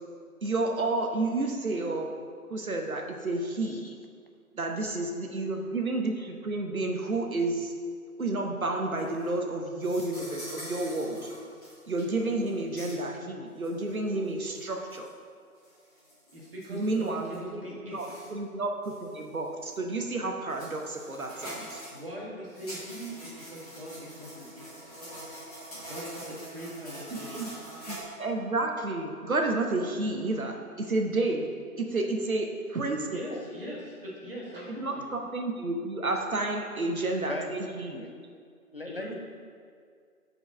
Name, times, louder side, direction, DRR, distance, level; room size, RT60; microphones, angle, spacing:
voice 1, 0.4-2.1 2.5-3.8 4.5-7.7 8.2-11.3 11.9-15.1 16.7-17.7 17.9-21.8 27.1-27.5 27.9-31.5 31.8-33.4 34.8-38.1, right 2 dB, 65° right, 3 dB, 0.9 m, -31 dB
sound 1, 9.0-9.3 9.8-12.0 12.3-12.5 12.8-12.9 13.6-13.7 14.5-15.1 15.6-17.4 17.9-18.3 18.8-19.2 19.7-19.8 20.5-22.0 22.5-28.0, equal, 25° left, 1.7 m, -44 dB
voice 2, 16.3-18.3 21.9-24.9 25.9-27.5 33.1-35.1 38.8-39.2, equal, 40° right, -6 dB, 1.8 m, -41 dB
voice 3, 38.7-39.1, left 2 dB, 40° left, 3 dB, 0.6 m, -38 dB
5.3 x 4.7 x 6.1 m, 2.2 s
figure-of-eight pair, 160°, 45 cm